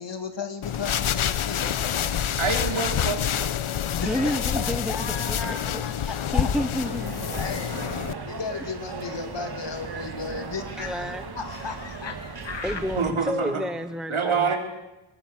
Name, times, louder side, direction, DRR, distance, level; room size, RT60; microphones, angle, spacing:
voice 1, 0.0-1.7 3.9-6.5 7.4-7.8 8.2-12.8, left 4 dB, 55° left, 7 dB, 2.8 m, -35 dB
sound 1, 0.6-8.1, left 9 dB, 75° left, 1.0 m, -27 dB
voice 2, 2.4-3.5 12.9-13.6 14.1-14.6, right 5 dB, 70° right, 4 dB, 3.9 m, -26 dB
voice 3, 4.0-7.7 10.8-11.2 12.6-14.6, equal, ahead, 11 dB, 0.7 m, -31 dB
sound 2, 6.8-13.1, right 4 dB, 50° right, 3.0 m, -37 dB
21.5 x 21.0 x 8.2 m, 1.0 s
wide cardioid pair, 135°, 50 cm